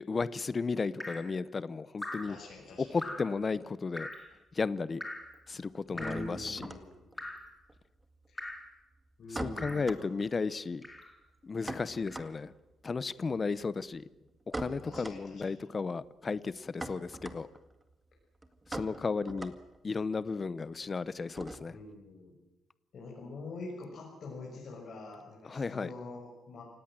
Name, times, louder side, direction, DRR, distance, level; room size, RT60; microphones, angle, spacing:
voice 1, 0.0-2.4 2.8-4.1 4.5-5.0 5.5-6.7 9.3-10.9 11.4-12.5 12.8-14.1 14.5-17.5 18.7-19.5 19.8-21.8 25.4-25.9, left 4 dB, 30° left, 18 dB, 0.8 m, -34 dB
Drip, 1.0-1.3 2.0-2.4 3.0-3.4 4.0-4.3 5.0-5.3 6.0-6.3 7.2-7.5 8.4-8.7 9.6-9.9 10.8-11.2 12.1-12.2, left 1 dB, 10° left, 4.1 m, -41 dB
sound 1, 2.1-3.7 4.0-4.7 4.9-21.9, right 2 dB, 15° right, 2.0 m, -45 dB
voice 2, 2.3-3.0 5.9-7.1 8.3-8.6 9.2-10.0 14.8-15.6 21.7-22.3 22.9-26.6, left 2 dB, 50° left, -3 dB, 6.6 m, -45 dB
28.5 x 17.5 x 7.7 m, 1.0 s
cardioid pair, 125°, 0 cm